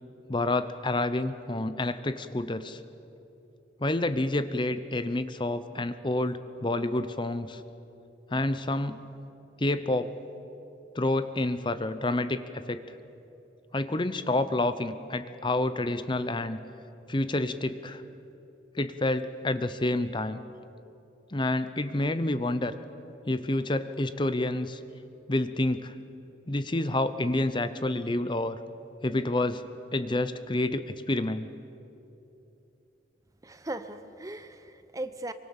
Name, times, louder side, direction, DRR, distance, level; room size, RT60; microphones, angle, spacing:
voice 1, 0.3-2.8 3.8-7.6 8.3-9.0 9.6-10.1 10.9-12.8 13.7-16.6 17.1-18.0 18.7-20.4 21.3-22.7 23.3-24.8 25.3-25.9 26.5-28.6 29.0-29.6 29.9-31.5, left 2 dB, 25° left, 12 dB, 0.8 m, -28 dB
voice 2, 33.4-35.3, right 1 dB, 20° right, 11 dB, 0.8 m, -38 dB
24.5 x 24.0 x 7.3 m, 2.8 s
head